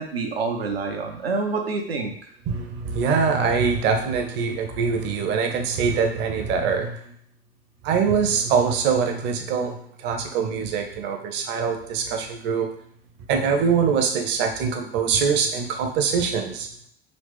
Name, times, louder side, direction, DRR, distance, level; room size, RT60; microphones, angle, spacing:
voice 1, 0.0-2.1, right 4 dB, 75° right, 3 dB, 0.8 m, -27 dB
voice 2, 2.5-7.0 7.8-12.7 13.3-16.7, right 6 dB, 35° right, 4 dB, 0.8 m, -23 dB
4.1 x 3.0 x 3.5 m, 0.64 s
figure-of-eight pair, 80°, 30 cm